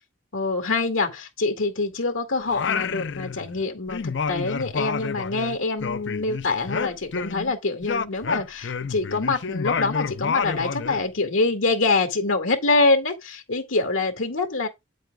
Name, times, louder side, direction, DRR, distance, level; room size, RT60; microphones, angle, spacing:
voice 1, 0.3-14.7, left 3 dB, 85° left, 2.3 m, -25 dB
Singing, 2.5-3.6 3.9-7.5 7.8-11.0, left 5 dB, 60° left, 0.5 m, -29 dB
9.2 x 7.8 x 2.3 m
head